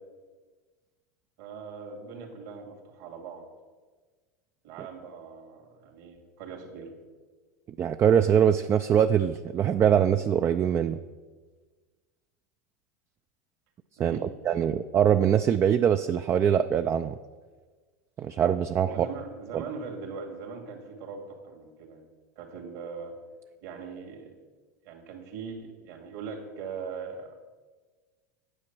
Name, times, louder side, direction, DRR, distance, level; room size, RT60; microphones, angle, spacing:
voice 1, 1.4-3.5 4.6-6.9 14.1-14.6 18.8-22.1 22.4-23.1 23.6-24.3 24.9-27.4, right 5 dB, 70° right, 2 dB, 2.4 m, -41 dB
voice 2, 7.8-11.0 14.0-14.2 14.5-17.1 18.2-19.1 19.5-19.6, right 8 dB, 30° right, 9 dB, 0.3 m, -23 dB
9.0 x 7.1 x 6.1 m, 1.4 s
hypercardioid pair, 105°, 9 cm